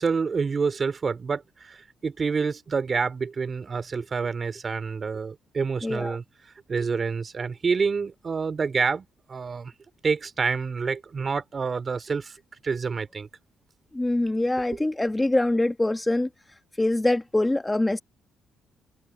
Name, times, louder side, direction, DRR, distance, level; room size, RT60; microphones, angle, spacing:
voice 1, 0.0-6.2 6.7-9.7 10.0-12.4 12.6-13.3 14.7-14.8, right 5 dB, 40° right, 3.2 m, -28 dB
voice 2, 5.8-6.2 13.9-16.3 16.8-18.0, left 2 dB, 15° left, 1.4 m, -24 dB
cardioid pair, 75°, 0 cm